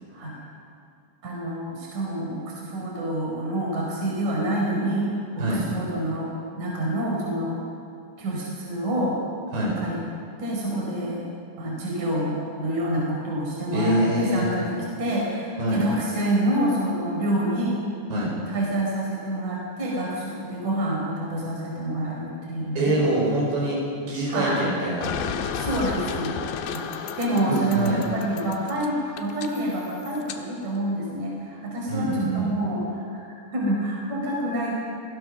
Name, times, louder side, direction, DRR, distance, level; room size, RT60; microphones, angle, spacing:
voice 1, 1.2-6.3 6.6-7.6 8.2-9.2 9.8-10.0 10.4-11.3 11.6-17.8 18.5-22.9 24.3-24.7 25.5-33.2 33.5-34.7, right 1 dB, 40° right, -3 dB, 6.3 m, -27 dB
voice 2, 13.7-14.5 15.6-15.8 18.1-18.3 22.8-23.8 24.1-25.1 27.5-28.0 31.9-32.5, right 1 dB, 70° right, -3 dB, 6.9 m, -24 dB
sound 1, 25.0-30.4, left 7 dB, 80° left, 3.2 m, -33 dB
26.5 x 17.0 x 6.6 m, 2.4 s
omnidirectional pair, 5.1 m